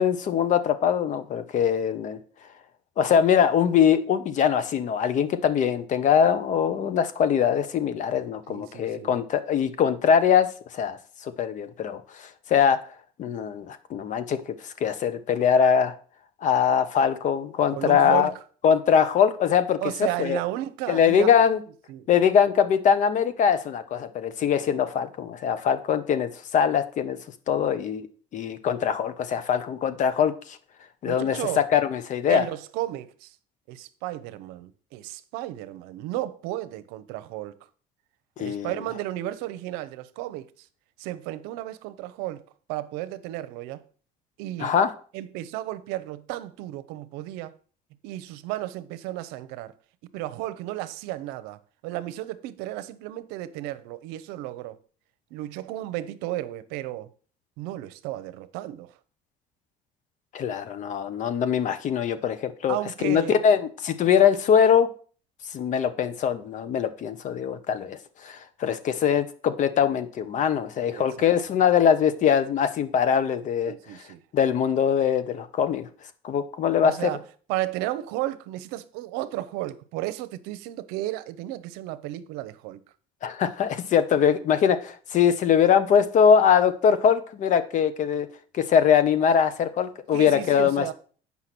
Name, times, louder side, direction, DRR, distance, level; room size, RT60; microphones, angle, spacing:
voice 1, 0.0-2.2 3.0-10.5 10.7-12.8 13.2-15.9 16.4-18.3 18.6-19.8 20.2-20.4 20.9-21.6 22.1-27.2 27.5-28.1 28.3-30.6 31.0-32.4 38.4-38.7 44.6-44.9 60.3-64.9 65.5-73.7 74.3-75.9 76.2-77.1 83.2-88.3 88.5-90.9, left 8 dB, 55° left, 1.1 m, -22 dB
voice 2, 8.5-9.1 17.7-18.4 19.8-21.3 21.9-22.1 31.1-31.6 32.3-33.3 33.7-37.6 38.4-40.5 41.0-42.4 42.7-43.8 44.4-44.7 45.1-47.5 48.0-49.7 50.1-51.6 51.8-54.8 55.3-57.1 57.6-58.9 62.7-63.4 70.9-71.3 73.7-74.2 76.8-77.2 77.5-82.8 90.1-90.9, right 15 dB, 90° right, 0.8 m, -33 dB
8.3 x 5.7 x 6.0 m
cardioid pair, 110°, 16 cm